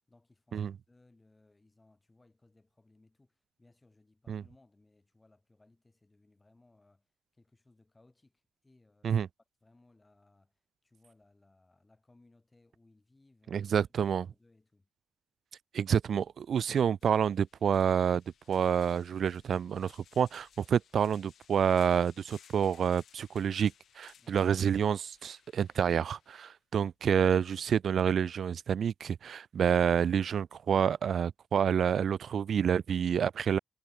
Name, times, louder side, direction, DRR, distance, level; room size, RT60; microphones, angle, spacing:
voice 1, 0.0-7.1 7.3-9.3 9.6-14.9 24.2-24.5, left 2 dB, 20° left, 7.0 m, -65 dB
voice 2, 13.5-14.3 15.7-18.2 18.5-33.6, right 8 dB, 65° right, 0.6 m, -28 dB
sound 1, 16.5-16.6 17.0-26.5, left 9 dB, 75° left, 6.0 m, -62 dB
cardioid pair, 95°, 0 cm